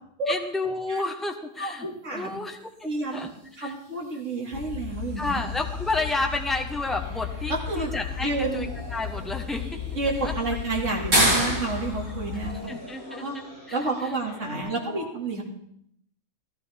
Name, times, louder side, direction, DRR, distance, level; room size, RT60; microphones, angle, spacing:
voice 1, 0.3-2.6 3.1-3.3 3.6-3.7 5.2-9.8 10.2-10.3 12.7-14.1 14.4-15.1, left 2 dB, ahead, 2 dB, 1.0 m, -31 dB
voice 2, 1.6-2.3 2.8-3.3 3.6-5.4 7.5-7.9 8.2-8.7 9.9-12.6 13.1-13.3 13.7-15.4, right 3 dB, 60° right, -1 dB, 2.6 m, -30 dB
sound 1, 2.7-14.6, equal, 80° right, 6.5 m, -33 dB
sound 2, 4.5-12.6, left 8 dB, 65° left, 1.1 m, -35 dB
15.0 x 14.0 x 3.5 m, 0.70 s
omnidirectional pair, 1.5 m